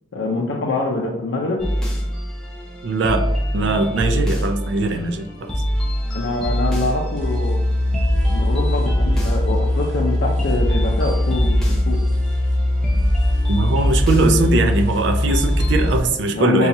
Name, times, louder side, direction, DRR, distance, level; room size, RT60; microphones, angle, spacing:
voice 1, 0.1-1.6 6.1-7.6 8.2-12.0 16.3-16.7, left 2 dB, 75° left, -2 dB, 0.5 m, -24 dB
sound 1, 1.6-15.9, equal, 5° left, 0.6 m, -24 dB
voice 2, 2.8-3.2 3.5-5.5 13.5-16.7, right 2 dB, 65° right, 8 dB, 0.4 m, -20 dB
sound 2, 7.2-16.1, left 1 dB, 40° right, 0.8 m, -21 dB
4.0 x 2.3 x 2.6 m, 0.84 s
head